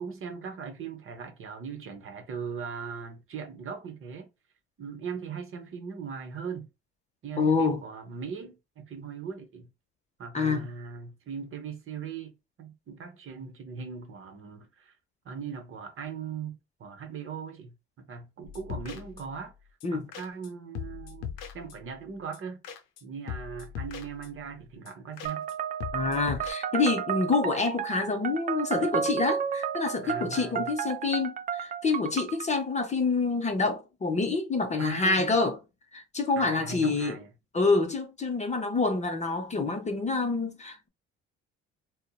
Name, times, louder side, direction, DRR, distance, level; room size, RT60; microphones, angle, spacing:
voice 1, 0.0-4.3 4.8-6.7 7.2-9.7 10.2-12.3 12.6-14.9 15.2-19.5 19.9-22.7 23.0-25.5 30.0-30.7 34.8-35.5 36.4-37.3, right 6 dB, 45° right, 0.8 m, -39 dB
voice 2, 7.4-7.8 10.3-10.7 19.8-20.1 25.9-35.6 35.9-37.2 37.5-40.9, left 3 dB, 25° left, 0.5 m, -27 dB
sound 1, 18.4-19.5 19.8-19.9 20.1-20.5 20.7-22.0 22.3-22.4 22.6-23.0 23.3-24.5 24.8-24.9 25.2-25.5 25.8-26.5, left 8 dB, 90° left, 0.5 m, -40 dB
sound 2, 25.2-32.5, right 8 dB, 30° right, 0.4 m, -32 dB
2.7 x 2.0 x 2.2 m
supercardioid pair, 70°, 29 cm